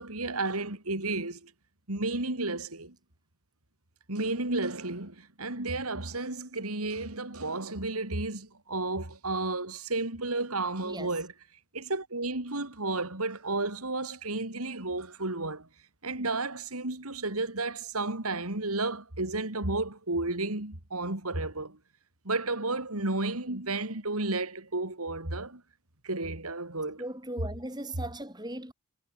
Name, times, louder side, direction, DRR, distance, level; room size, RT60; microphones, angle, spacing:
voice 1, 0.0-1.5 1.9-2.9 4.1-11.3 11.7-15.7 16.0-21.8 22.2-25.6 26.0-27.0, right 2 dB, 90° right, 4.1 m, -32 dB
voice 2, 10.8-11.2 27.0-28.7, right 1 dB, 20° right, 5.8 m, -38 dB
head